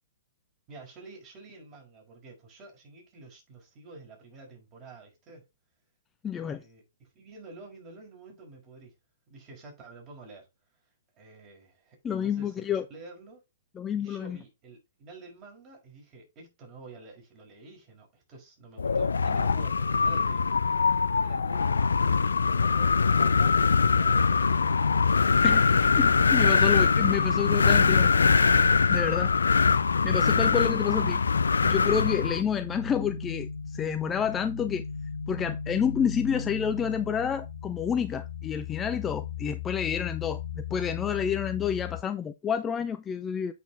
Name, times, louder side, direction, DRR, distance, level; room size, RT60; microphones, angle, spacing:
voice 1, 0.7-5.4 6.3-9.0 9.3-10.5 11.2-13.4 14.0-20.5 21.1-21.8 22.6-24.9, right 3 dB, 30° right, 5.2 m, -49 dB
voice 2, 6.2-6.6 12.0-12.8 13.8-14.4 25.4-28.2 28.5-29.3 30.0-31.2 31.6-34.8 35.3-43.5, left 8 dB, 15° left, 0.6 m, -29 dB
Wind, 18.8-32.4, left 5 dB, 70° left, 0.5 m, -23 dB
sound 1, 23.9-42.0, left 6 dB, 55° left, 2.0 m, -38 dB
8.3 x 6.1 x 3.6 m
figure-of-eight pair, 115°, 0 cm